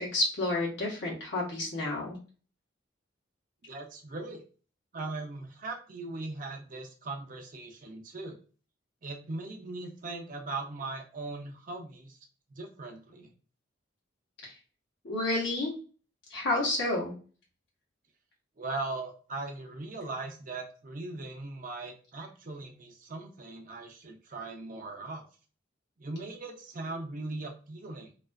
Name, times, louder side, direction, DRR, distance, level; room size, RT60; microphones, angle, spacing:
voice 1, 0.0-2.2 14.4-14.5 15.0-15.7 16.3-17.1, left 2 dB, 65° left, -4 dB, 0.8 m, -30 dB
voice 2, 3.6-4.4 4.9-8.4 9.0-12.2 12.5-13.3 18.6-25.2 26.0-28.1, right 3 dB, 45° right, 2 dB, 0.5 m, -39 dB
2.3 x 2.3 x 2.2 m, 0.38 s
head